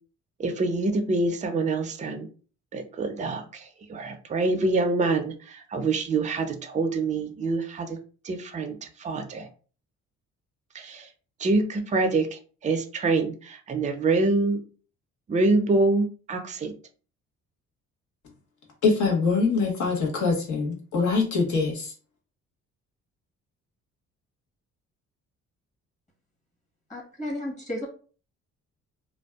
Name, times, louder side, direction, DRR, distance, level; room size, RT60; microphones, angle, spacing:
voice 1, 0.4-2.3 2.7-8.0 8.2-9.5 10.7-11.1 11.4-14.6 15.3-16.7, right 3 dB, 25° right, 6 dB, 0.4 m, -26 dB
voice 2, 18.8-21.9, left 4 dB, 70° left, 0 dB, 1.0 m, -24 dB
voice 3, 26.9-27.9, left 1 dB, 25° left, -1 dB, 1.1 m, -33 dB
2.5 x 2.2 x 2.3 m, 0.39 s
cardioid pair, 90°, 30 cm